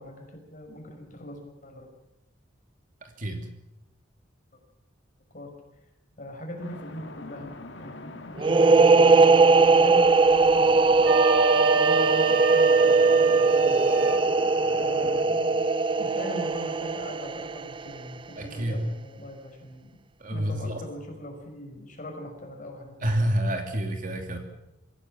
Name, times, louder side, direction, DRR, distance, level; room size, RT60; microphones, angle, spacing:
voice 1, 0.0-1.9 4.5-4.6 5.3-5.5 6.2-9.4 9.7-11.3 11.6-14.1 14.7-15.7 16.0-19.9 20.2-23.1, equal, 40° left, 3 dB, 5.7 m, -40 dB
sound 1, 6.6-15.3, left 2 dB, 65° left, 2.1 m, -44 dB
sound 2, 8.4-17.9, right 4 dB, 25° right, 0.7 m, -20 dB
Wind instrument woodwind instrument, 11.0-14.2, right 4 dB, 90° right, 2.9 m, -26 dB
voice 2, 18.4-18.8 20.2-20.8 23.0-24.4, right 1 dB, 45° right, 4 dB, 2.8 m, -28 dB
26.0 x 16.0 x 7.6 m, 0.95 s
head